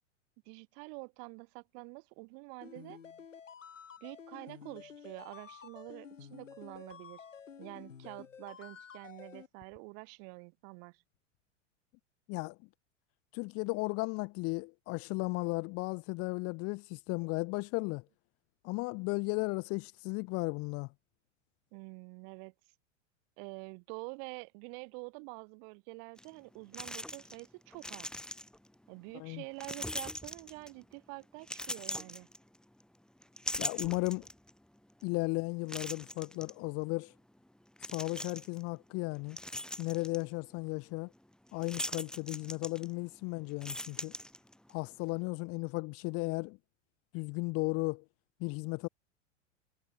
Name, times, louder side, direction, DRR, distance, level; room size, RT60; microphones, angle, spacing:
voice 1, 0.5-3.0 4.0-7.2 7.6-11.0 21.7-22.5 23.4-28.1 28.9-32.3, right 40 dB or more, 50° right, 4.5 m, -47 dB
sound 1, 2.6-9.5, left 7 dB, 80° left, 4.2 m, -51 dB
voice 2, 13.3-18.0 18.6-20.9 29.1-29.4 33.6-34.3 35.0-37.1 37.9-39.4 39.8-41.1 41.5-44.1 44.7-46.6 47.1-48.0 48.4-48.9, left 27 dB, 40° left, 0.8 m, -35 dB
sound 2, 26.2-26.3 26.7-27.5 27.7-28.7 29.6-30.8 31.4-32.8 33.2-34.5 35.0-35.1 35.7-36.5 37.8-38.6 39.1-40.2 41.6-43.2 43.5-44.7, left 1 dB, ahead, 5.3 m, -40 dB
figure-of-eight pair, 95°, 38 cm